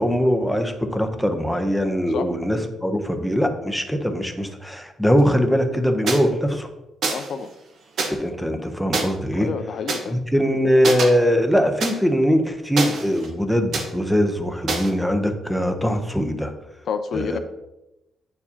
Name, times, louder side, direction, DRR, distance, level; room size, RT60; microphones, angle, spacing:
voice 1, 0.0-6.7 8.1-9.5 10.1-16.5 17.1-17.4, equal, ahead, 6 dB, 0.6 m, -21 dB
sound 1, 6.1-6.2 7.0-7.3 8.0-8.1 8.9-9.0 9.9-10.0 10.8-11.1 11.8-11.9 12.8-13.3 13.7-13.9 14.7-14.9, right 4 dB, 55° right, 0.9 m, -24 dB
voice 2, 7.1-7.5 9.4-10.2 16.8-17.4, left 6 dB, 55° left, 9 dB, 0.4 m, -28 dB
8.5 x 4.6 x 2.7 m, 0.95 s
cardioid pair, 140°, 0 cm